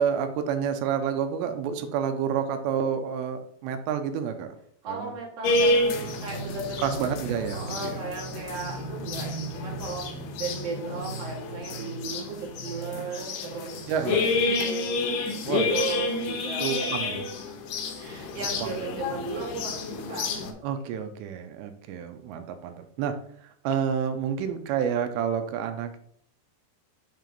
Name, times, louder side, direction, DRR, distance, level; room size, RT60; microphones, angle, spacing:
voice 1, 0.0-4.6 4.9-5.1 6.8-8.0 13.9-14.3 15.5-16.0 16.6-17.2 18.6-18.7 20.6-23.2 23.6-26.0, right 7 dB, 85° right, 8 dB, 2.9 m, -29 dB
voice 2, 4.8-7.0 7.5-17.2 18.0-20.6, right 3 dB, 70° right, -2 dB, 1.5 m, -36 dB
sound 1, 5.4-20.5, left 2 dB, 80° left, 2.0 m, -29 dB
7.5 x 2.7 x 5.1 m, 0.65 s
omnidirectional pair, 5.0 m